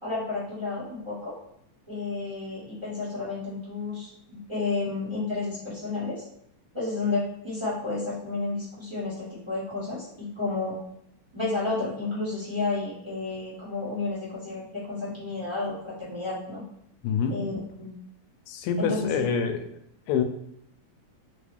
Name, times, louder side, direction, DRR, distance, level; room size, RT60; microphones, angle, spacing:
voice 1, 0.0-1.3 1.9-6.2 6.7-10.8 11.3-16.6 17.3-17.5 17.8-17.9 18.8-19.1, left 3 dB, 15° right, -10 dB, 0.9 m, -31 dB
voice 2, 17.0-17.4 18.5-19.7 20.1-20.2, left 6 dB, 80° left, 7 dB, 1.8 m, -26 dB
5.2 x 2.3 x 3.4 m, 0.74 s
omnidirectional pair, 3.3 m